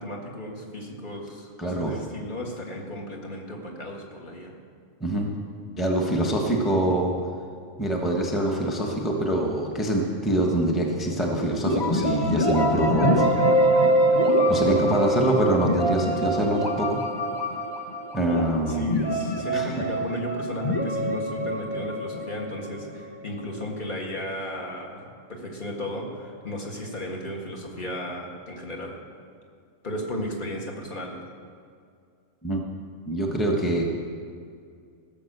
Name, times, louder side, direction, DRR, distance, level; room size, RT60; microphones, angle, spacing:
voice 1, 0.0-4.6 18.7-29.0 29.8-31.2, left 1 dB, 40° left, 0 dB, 1.9 m, -34 dB
voice 2, 1.6-1.9 5.0-5.3 5.8-7.1 7.8-13.3 14.5-17.0 18.1-19.0 19.5-19.7 32.4-32.6 33.1-33.8, right 1 dB, ahead, 0 dB, 1.1 m, -24 dB
sound 1, 11.6-23.4, right 1 dB, 20° left, 1.1 m, -24 dB
16.5 x 7.2 x 6.7 m, 2.3 s
omnidirectional pair, 1.3 m